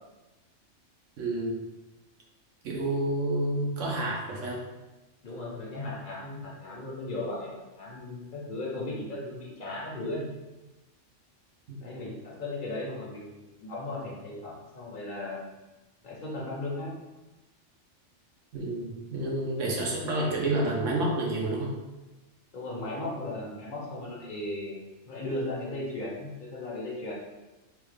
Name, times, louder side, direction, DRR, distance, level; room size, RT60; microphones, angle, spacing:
voice 1, 1.2-1.5 2.6-4.6 11.7-11.8 18.5-21.7, right 1 dB, 85° right, -2 dB, 1.2 m, -29 dB
voice 2, 5.2-10.3 11.8-15.5 16.0-17.0 22.5-27.1, left 2 dB, 45° left, -4 dB, 0.8 m, -36 dB
3.5 x 2.3 x 3.2 m, 1.1 s
omnidirectional pair, 1.3 m